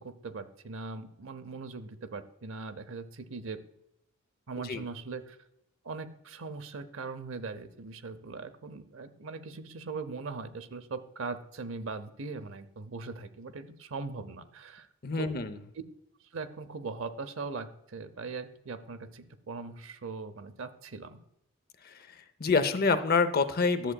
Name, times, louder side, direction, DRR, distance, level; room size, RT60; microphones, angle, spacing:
voice 1, 0.0-3.6 4.5-5.4 5.8-14.9 15.2-15.3 16.3-21.2, right 4 dB, 70° right, 11 dB, 0.7 m, -40 dB
voice 2, 15.0-15.6 21.8-23.9, left 4 dB, 45° left, 11 dB, 0.6 m, -27 dB
11.5 x 7.6 x 2.3 m, 0.81 s
head